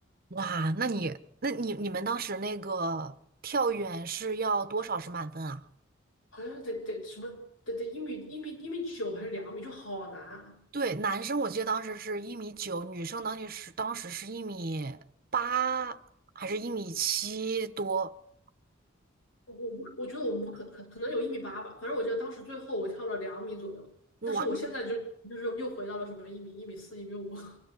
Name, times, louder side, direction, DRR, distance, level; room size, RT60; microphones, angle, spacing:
voice 1, 0.3-3.2 3.4-5.6 10.7-15.0 15.3-16.0 16.3-18.1 24.2-24.6, right 4 dB, 50° right, 1.1 m, -32 dB
voice 2, 6.3-7.4 7.7-10.6 19.5-23.9 24.3-25.0 25.2-27.6, equal, 85° left, 7.1 m, -36 dB
25.0 x 13.0 x 8.3 m
head